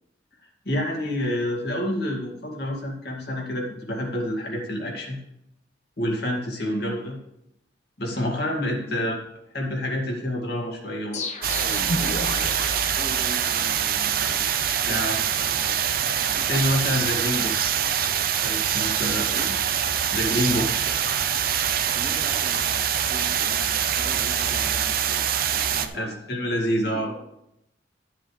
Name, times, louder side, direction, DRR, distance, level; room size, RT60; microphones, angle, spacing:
voice 1, 0.7-5.2 6.0-7.2 8.0-9.2 9.5-11.2 14.9-15.2 16.4-17.5 18.4-19.2 20.1-20.8 25.9-27.1, left 1 dB, 60° left, -1 dB, 2.1 m, -27 dB
voice 2, 6.6-6.9 8.7-9.1 12.9-16.5 19.0-19.5 21.9-26.2 26.8-27.2, right 1 dB, 25° right, -3 dB, 2.2 m, -41 dB
sound 1, 11.1-13.9, left 2 dB, 40° left, 0.9 m, -32 dB
sound 2, 11.4-25.9, right 9 dB, 50° right, 0.6 m, -24 dB
12.5 x 7.8 x 3.3 m, 0.81 s
head